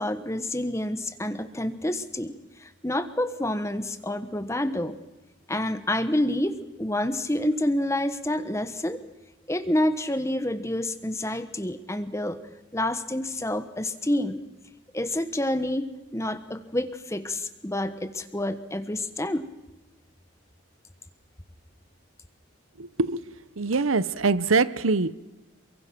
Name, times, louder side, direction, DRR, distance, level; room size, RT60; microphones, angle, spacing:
voice 1, 0.0-5.0 5.5-9.0 9.5-12.4 12.7-14.4 14.9-19.5, left 1 dB, 15° left, 1.2 m, -28 dB
voice 2, 22.8-23.2 23.6-25.1, right 4 dB, 85° right, 0.9 m, -23 dB
28.0 x 23.0 x 6.1 m
head